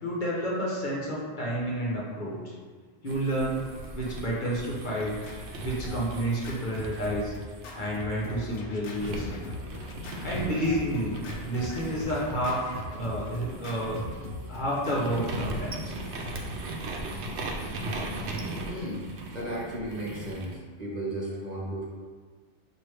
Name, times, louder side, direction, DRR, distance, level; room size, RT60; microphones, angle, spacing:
voice 1, 0.0-2.5 3.0-3.6 3.9-5.1 5.6-7.3 7.7-9.4 10.2-11.1 11.4-12.6 12.9-14.0 14.5-15.9, right 1 dB, 50° left, -5 dB, 1.0 m, -30 dB
sound 1, 3.1-8.5 9.0-20.6, right 1 dB, 85° right, 0.9 m, -38 dB
Scratching (performance technique), 4.3-16.4, left 2 dB, 65° left, 0.8 m, -41 dB
voice 2, 18.4-21.8, right 1 dB, 45° right, -6 dB, 1.0 m, -35 dB
6.0 x 2.7 x 3.2 m, 1.6 s
omnidirectional pair, 1.1 m